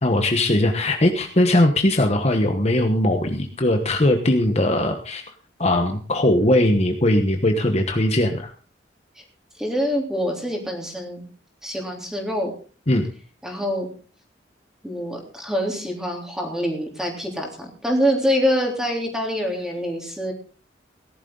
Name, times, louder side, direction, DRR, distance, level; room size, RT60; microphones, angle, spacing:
voice 1, 0.0-5.2 5.6-8.5 12.9-13.1, left 1 dB, 35° left, 5 dB, 1.1 m, -20 dB
voice 2, 9.6-11.3 11.6-12.5 13.4-13.9 14.8-20.3, equal, 5° right, 0 dB, 3.4 m, -25 dB
18.0 x 12.0 x 3.9 m, 0.38 s
head